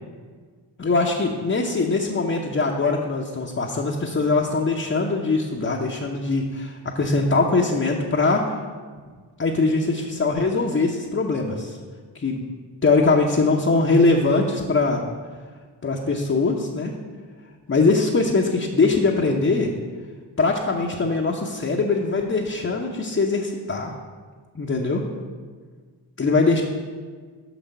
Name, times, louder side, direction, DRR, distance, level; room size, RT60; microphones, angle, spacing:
voice 1, 0.8-8.5 9.4-11.8 12.1-12.4 12.8-15.0 15.8-16.9 17.7-19.7 20.4-23.9 24.5-25.0 26.2-26.6, left 3 dB, 25° left, -1 dB, 0.9 m, -22 dB
6.0 x 5.9 x 5.4 m, 1.5 s
supercardioid pair, 40°, 48 cm